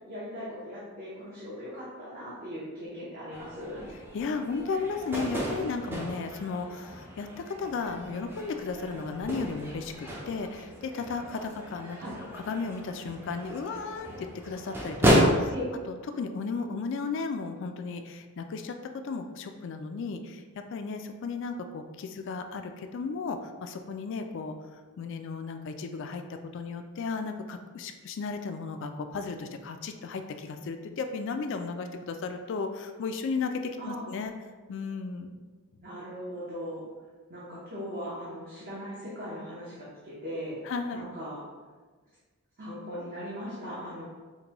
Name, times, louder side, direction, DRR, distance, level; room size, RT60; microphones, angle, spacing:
voice 1, 0.1-3.9 12.0-12.2 15.5-15.6 33.8-34.2 35.8-36.8 37.3-40.6 40.9-41.4 42.6-44.0, equal, 45° right, -8 dB, 0.8 m, -39 dB
sound 1, 3.3-15.2, equal, 10° right, 0.4 m, -33 dB
voice 2, 4.1-12.0 12.3-15.5 15.9-20.4 20.7-24.5 25.0-26.2 26.5-34.3 34.7-35.4 40.6-41.0, left 4 dB, 55° left, 6 dB, 0.3 m, -34 dB
5.1 x 2.2 x 2.9 m, 1.4 s
head